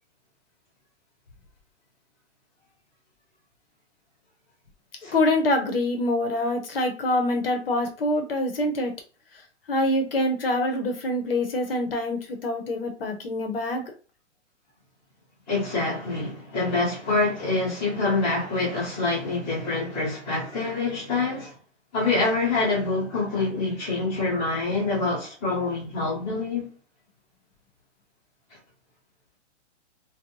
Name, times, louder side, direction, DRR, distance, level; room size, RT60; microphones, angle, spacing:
voice 1, 5.1-8.9 9.7-13.9, left 1 dB, 50° left, 0.7 m, -25 dB
voice 2, 15.5-21.6 21.9-26.7, left 3 dB, 5° left, 0.6 m, -26 dB
2.5 x 2.1 x 2.8 m
hypercardioid pair, 180°, 37 cm